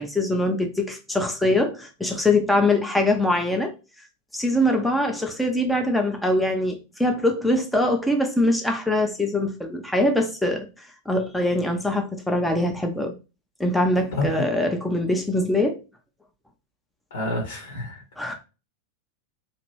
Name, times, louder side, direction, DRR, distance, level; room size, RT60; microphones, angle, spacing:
voice 1, 0.0-3.7 4.3-10.7 11.1-13.1 13.6-15.8 18.2-18.3, left 1 dB, 5° left, 0.7 m, -23 dB
voice 2, 17.1-18.0, left 1 dB, 65° left, 1.1 m, -28 dB
2.9 x 2.5 x 3.1 m
figure-of-eight pair, 90°, 0 cm